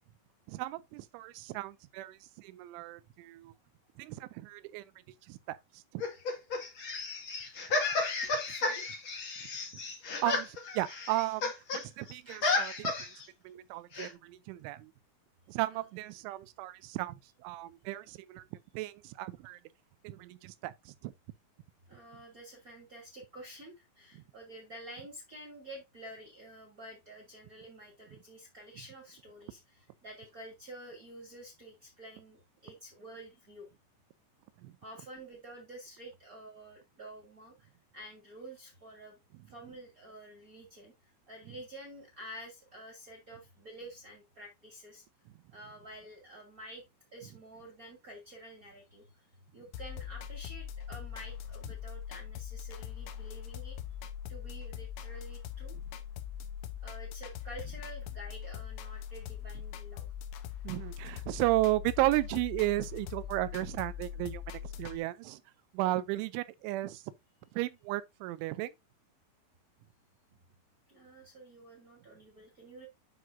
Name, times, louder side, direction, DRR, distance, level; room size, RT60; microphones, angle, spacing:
voice 1, 0.5-3.5 4.0-4.8 5.3-6.0 10.1-13.1 13.4-14.9 15.5-18.4 18.7-19.6 20.0-21.1 34.6-34.8 60.6-65.4 65.7-67.1 67.5-68.7, right 17 dB, 85° right, 2.9 m, -34 dB
sound 1, 6.0-11.8 12.1-13.2 13.9-14.1, left 3 dB, 55° left, 1.3 m, -33 dB
voice 2, 7.2-7.6 7.9-8.0 8.2-8.9 15.7-15.8 21.9-33.7 34.8-39.2 39.5-45.0 45.5-46.8 47.1-49.0 49.5-53.8 54.3-55.8 56.8-60.1 70.9-72.9, right 1 dB, 25° right, 2.0 m, -49 dB
sound 2, 49.7-65.0, left 9 dB, 85° left, 3.5 m, -42 dB
9.4 x 6.0 x 2.6 m
omnidirectional pair, 5.7 m